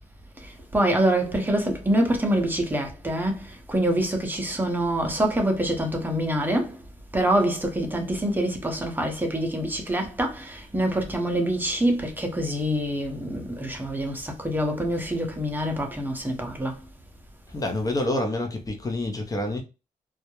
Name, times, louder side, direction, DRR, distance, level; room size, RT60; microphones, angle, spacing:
voice 1, 0.4-6.8 7.1-16.8, right 1 dB, 15° right, 0.7 m, -25 dB
voice 2, 17.5-19.6, left 1 dB, 25° left, 0.6 m, -27 dB
2.3 x 2.0 x 2.9 m
cardioid pair, 95°, 14 cm